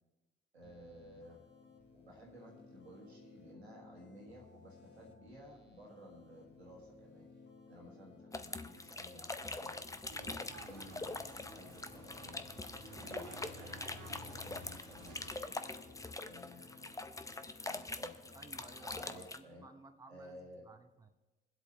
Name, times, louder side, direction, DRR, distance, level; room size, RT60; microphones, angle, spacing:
voice 1, 0.5-1.4 1.9-7.3 7.6-10.4 10.7-12.5 12.9-18.2 18.8-19.7 20.1-20.6, equal, 90° right, -1 dB, 1.6 m, -56 dB
sound 1, 0.6-19.3, left 3 dB, 35° left, 1.8 m, -59 dB
sound 2, 8.3-19.4, left 2 dB, 10° left, 0.7 m, -44 dB
sound 3, 10.1-15.4, right 1 dB, 70° right, 1.6 m, -52 dB
voice 2, 18.3-21.1, right 2 dB, 10° right, 6 dB, 1.0 m, -57 dB
22.5 x 8.1 x 3.3 m, 1.1 s
figure-of-eight pair, 45°, 31 cm